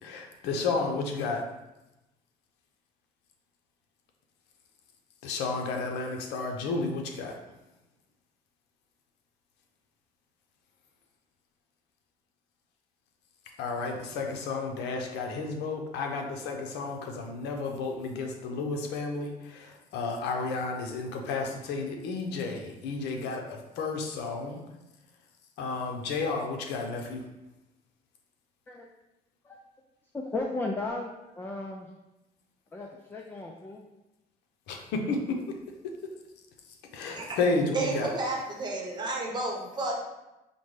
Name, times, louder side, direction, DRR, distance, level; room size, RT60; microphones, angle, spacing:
voice 1, 0.0-1.4 5.2-7.3 13.6-24.6 25.6-27.2 34.7-35.6 36.9-38.1, left 3 dB, 85° left, 3 dB, 0.6 m, -32 dB
voice 2, 30.1-31.9 32.7-33.8, left 2 dB, 10° left, 1 dB, 0.3 m, -35 dB
voice 3, 37.7-40.0, right 2 dB, 25° right, -1 dB, 0.9 m, -31 dB
5.2 x 2.1 x 3.2 m, 0.97 s
cardioid pair, 110°, 17 cm